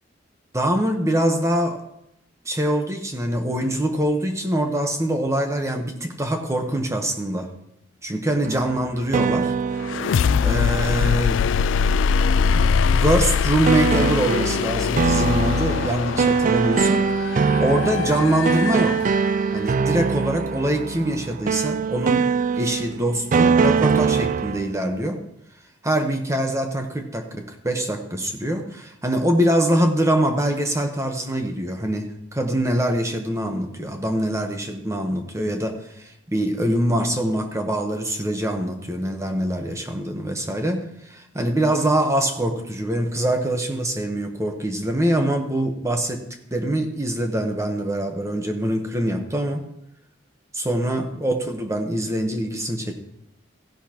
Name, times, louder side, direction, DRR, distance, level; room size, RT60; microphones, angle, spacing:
voice 1, 0.5-1.8 2.4-7.5 8.0-9.5 10.4-11.4 12.9-19.1 19.5-25.2 25.8-46.2 46.5-49.6 50.5-52.9, right 1 dB, 15° right, 4 dB, 1.0 m, -24 dB
sound 1, 8.4-11.4 13.7-24.7, right 5 dB, 45° right, 0.4 m, -23 dB
sound 2, 9.8-19.6, left 6 dB, 80° left, 0.3 m, -22 dB
15.5 x 11.0 x 2.9 m, 0.78 s
head